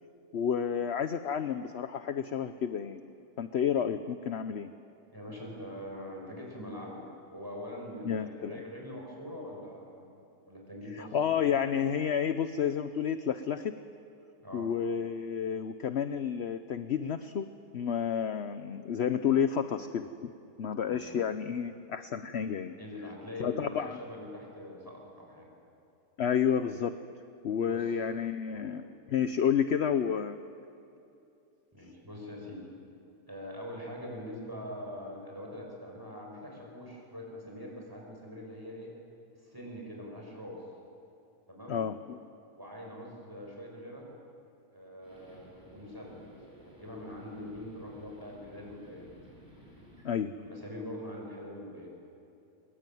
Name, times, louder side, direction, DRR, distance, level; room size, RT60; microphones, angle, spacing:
voice 1, 0.3-4.7 8.0-8.6 11.0-13.7 14.5-17.5 17.7-20.3 20.6-22.8 23.4-24.0 26.2-26.9 27.4-30.4 41.7-42.2 50.0-50.3, left 8 dB, 55° left, 10 dB, 0.9 m, -30 dB
voice 2, 5.1-7.0 7.3-10.2 10.5-11.3 14.4-14.7 20.8-21.1 22.8-25.5 27.7-27.9 28.5-28.7 31.7-32.6 33.3-38.9 39.4-40.6 41.5-41.8 42.6-44.1 44.7-46.2 46.6-49.1 50.4-51.9, left 1 dB, 15° right, -1 dB, 6.9 m, -43 dB
sound 1, 45.0-50.0, equal, 15° left, 6.7 m, -55 dB
23.5 x 22.5 x 9.3 m, 2.7 s
omnidirectional pair, 1.6 m